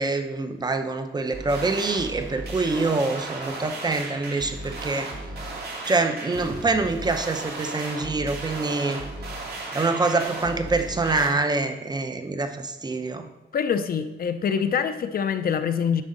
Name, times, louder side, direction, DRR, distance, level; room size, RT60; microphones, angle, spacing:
voice 1, 0.0-5.1 5.9-9.0 9.7-13.3, right 3 dB, 25° right, 7 dB, 0.8 m, -25 dB
sound 1, 1.3-11.3, right 2 dB, 65° right, 2.0 m, -35 dB
voice 2, 13.5-16.0, left 7 dB, 55° left, 10 dB, 0.6 m, -25 dB
11.0 x 6.2 x 3.9 m, 1.1 s
wide cardioid pair, 130°, 18 cm